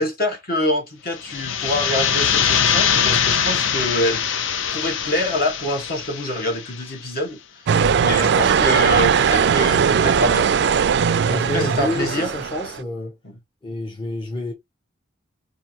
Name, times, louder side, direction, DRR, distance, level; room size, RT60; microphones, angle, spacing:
voice 1, 0.0-4.2 4.7-7.4 7.7-10.5 11.3-12.3 13.2-13.4, left 1 dB, 50° left, 1.4 m, -25 dB
sound 1, 1.2-6.8, left 8 dB, 80° left, 0.5 m, -22 dB
sound 2, 7.7-12.8, right 7 dB, 60° right, 0.3 m, -19 dB
voice 2, 11.3-13.2 13.6-14.5, left 1 dB, 25° left, 0.8 m, -28 dB
4.5 x 2.7 x 2.8 m
head